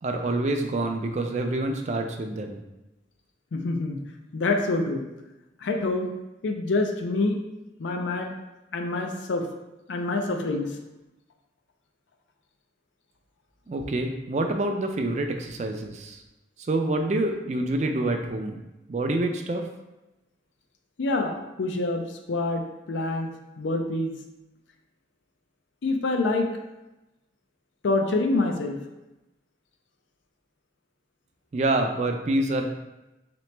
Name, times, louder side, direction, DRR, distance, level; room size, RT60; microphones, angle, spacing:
voice 1, 0.0-2.6 13.7-16.2 16.7-18.6 18.9-19.6 31.5-32.7, right 2 dB, 40° right, 5 dB, 0.3 m, -27 dB
voice 2, 3.5-4.0 4.3-5.0 5.6-6.1 6.4-7.4 7.8-8.3 8.7-9.5 9.9-10.8 21.0-23.3 23.6-24.1 25.8-26.5 27.8-28.8, left 2 dB, 90° left, 3 dB, 0.5 m, -26 dB
3.9 x 3.0 x 3.2 m, 0.99 s
head